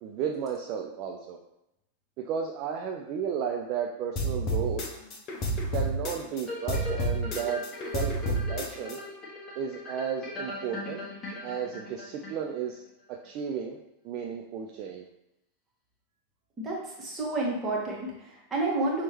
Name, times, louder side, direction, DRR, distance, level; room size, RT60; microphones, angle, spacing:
voice 1, 0.0-1.4 2.3-4.8 5.7-7.6 7.9-9.0 9.6-11.0 11.4-12.8 13.2-13.8 14.0-15.1, right 7 dB, 40° right, 2 dB, 0.4 m, -33 dB
sound 1, 4.2-6.4 6.7-9.0, right 1 dB, 35° left, 0.8 m, -29 dB
sound 2, 6.5-12.7 13.2-13.3, left 2 dB, 15° left, 1.4 m, -40 dB
voice 2, 16.6-19.0, right 2 dB, 20° right, -4 dB, 1.5 m, -30 dB
6.1 x 2.9 x 3.0 m, 0.85 s
figure-of-eight pair, 90°, 0 cm